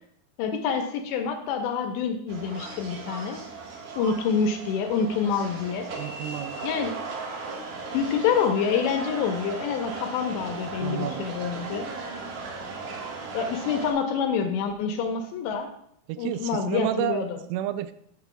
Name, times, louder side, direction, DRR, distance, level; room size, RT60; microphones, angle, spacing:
voice 1, 0.4-3.4 4.0-5.9 6.6-7.0 7.9-11.9 13.3-15.7 16.2-17.3, left 6 dB, 80° left, 5 dB, 2.7 m, -27 dB
sound 1, 2.3-13.9, right 4 dB, 60° right, 2.5 m, -37 dB
voice 2, 6.0-6.6 10.8-11.3 16.1-17.9, right 13 dB, 85° right, 12 dB, 3.0 m, -31 dB
15.5 x 6.9 x 2.3 m, 0.70 s
omnidirectional pair, 5.5 m